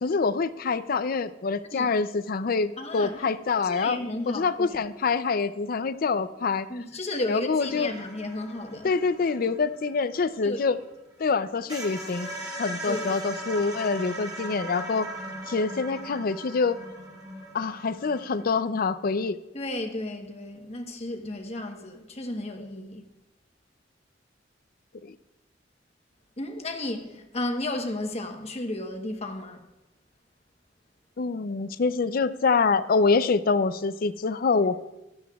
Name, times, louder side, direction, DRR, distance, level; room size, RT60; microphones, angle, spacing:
voice 1, 0.0-4.0 4.3-6.7 7.3-7.9 8.8-10.8 11.2-12.3 12.6-15.1 15.5-16.8 17.5-19.4 25.0-25.1 31.2-34.8, left 4 dB, 50° left, 0.5 m, -25 dB
voice 2, 2.8-3.3 3.6-4.8 6.7-8.9 10.4-10.7 12.9-13.1 19.5-23.0 26.4-29.6, left 1 dB, 35° left, 1.1 m, -33 dB
sound 1, 7.6-11.0 11.3-11.4 11.7-18.4, right 1 dB, 25° right, 3.2 m, -39 dB
16.0 x 12.5 x 2.3 m
head